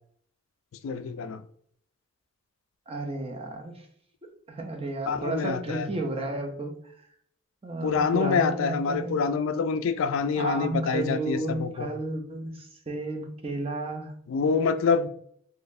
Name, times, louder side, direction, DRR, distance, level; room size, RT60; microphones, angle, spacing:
voice 1, 0.8-1.4 5.1-5.9 7.8-11.9 14.3-15.1, left 5 dB, 75° left, 0.3 m, -26 dB
voice 2, 2.9-3.8 4.5-6.7 7.6-9.2 10.4-14.1, right 2 dB, 30° right, 0.6 m, -32 dB
3.9 x 3.1 x 2.6 m
head